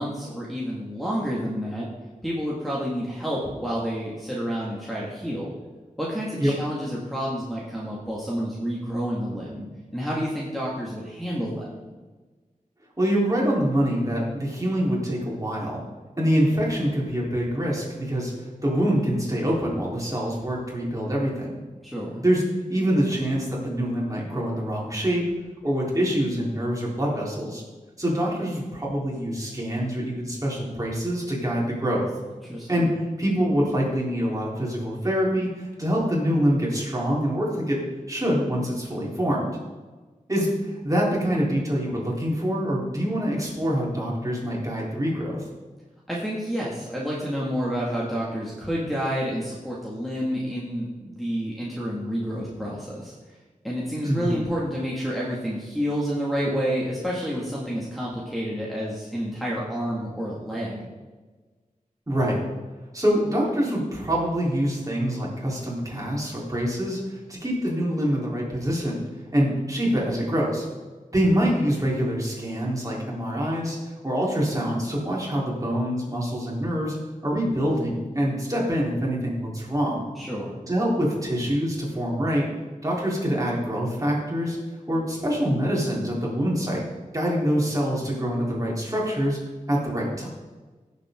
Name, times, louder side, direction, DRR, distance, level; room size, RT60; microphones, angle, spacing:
voice 1, 0.0-1.9 2.2-5.5 6.0-9.7 9.9-11.8 21.8-22.2 32.4-32.8 46.1-53.1 53.6-60.9 80.2-80.5, equal, ahead, -6 dB, 2.2 m, -29 dB
voice 2, 13.0-15.8 16.2-21.6 22.2-22.4 22.7-25.2 25.6-27.6 28.0-32.1 32.7-39.5 40.3-45.4 54.0-54.4 62.1-62.4 62.9-69.0 69.3-70.7 71.1-77.0 77.2-80.0 80.7-82.5 82.8-84.6 84.9-86.8 87.1-89.4 89.7-90.3, equal, 25° right, -4 dB, 3.9 m, -25 dB
16.5 x 7.6 x 3.8 m, 1.3 s
wide cardioid pair, 90°, 14 cm